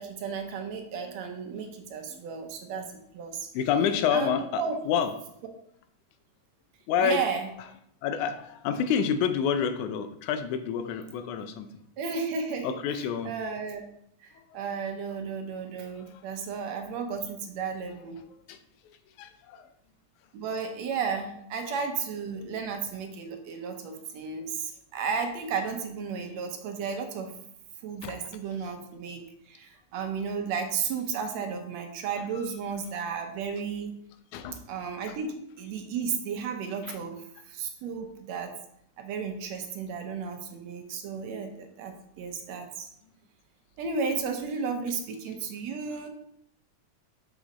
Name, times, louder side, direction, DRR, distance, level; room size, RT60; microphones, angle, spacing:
voice 1, 0.0-2.9 3.1-3.5 4.1-4.8 7.0-7.5 12.0-12.8 13.2-13.8 14.2-18.2 20.3-27.3 27.8-34.0 34.7-37.2 37.5-38.5 39.0-42.9 43.8-46.1, right 5 dB, 70° right, 4 dB, 1.9 m, -33 dB
voice 2, 3.5-5.1 6.9-7.2 8.0-11.7 12.6-13.3 14.4-14.6 18.5-18.6 18.8-19.7 22.4-22.6 28.0-28.2 34.3-34.6 35.1-35.2 36.8-37.0 45.9-46.0, left 7 dB, 85° left, 9 dB, 2.1 m, -29 dB
6.3 x 5.0 x 4.0 m, 0.72 s
omnidirectional pair, 3.4 m